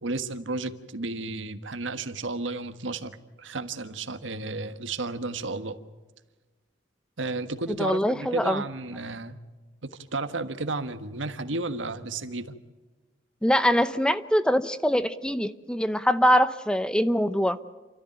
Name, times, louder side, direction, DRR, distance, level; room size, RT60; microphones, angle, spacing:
voice 1, 0.0-3.1 3.4-5.8 7.2-9.4 10.1-12.5, right 3 dB, 80° right, 10 dB, 1.5 m, -32 dB
voice 2, 7.7-8.6 13.4-17.6, equal, 5° left, 12 dB, 0.7 m, -23 dB
29.5 x 13.5 x 9.0 m, 1.2 s
head